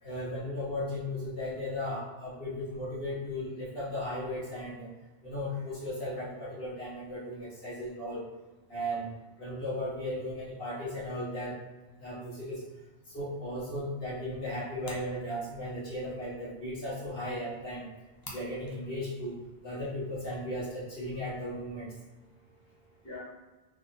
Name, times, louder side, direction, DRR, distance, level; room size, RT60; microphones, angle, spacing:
voice 1, 0.0-4.9 5.2-8.2 8.7-9.1 9.4-11.6 12.0-12.6 13.1-17.8 18.3-19.3 19.6-21.9, left 1 dB, 60° left, -10 dB, 1.5 m, -36 dB
voice 2, 9.5-9.9 18.2-18.4 19.7-19.8 21.1-21.2 21.9-23.2, left 3 dB, 15° left, -8 dB, 0.8 m, -52 dB
sound 1, 13.5-21.4, left 1 dB, 30° left, 0.4 m, -54 dB
3.8 x 2.1 x 2.6 m, 1.1 s
omnidirectional pair, 1.1 m